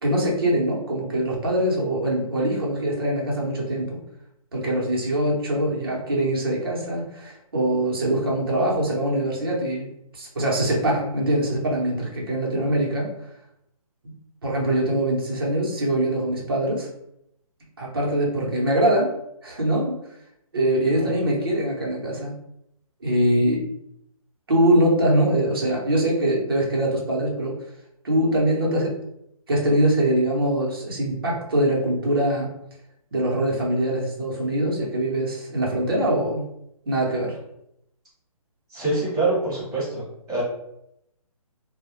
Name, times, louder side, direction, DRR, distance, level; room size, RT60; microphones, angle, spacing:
voice 1, 0.0-4.0 4.5-9.9 10.1-13.1 14.0-14.1 14.4-16.9 17.8-19.1 19.4-19.9 20.5-22.3 23.0-23.6 24.5-27.5 28.0-28.9 29.5-32.5 33.1-36.4 36.9-37.4, right 1 dB, 40° right, -3 dB, 0.7 m, -23 dB
voice 2, 38.7-40.0 40.3-40.4, right 2 dB, ahead, -20 dB, 0.8 m, -25 dB
2.1 x 2.0 x 2.9 m, 0.79 s
hypercardioid pair, 180°, 19 cm